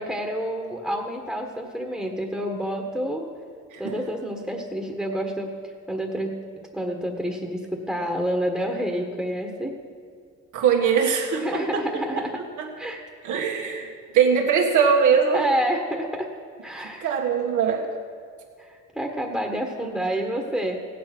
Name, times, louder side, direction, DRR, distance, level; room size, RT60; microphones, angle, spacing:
voice 1, 0.0-3.2 3.8-6.4 6.7-9.7 11.4-12.4 12.8-13.0 15.3-16.3 16.6-17.1 18.6-20.8, equal, ahead, 1 dB, 1.5 m, -28 dB
voice 2, 10.5-11.8 12.1-12.2 12.6-12.7 13.2-13.9 14.1-15.4 17.0-17.9, right 6 dB, 80° right, -1 dB, 1.6 m, -21 dB
16.0 x 9.3 x 6.1 m, 2.2 s
cardioid pair, 90°, 30 cm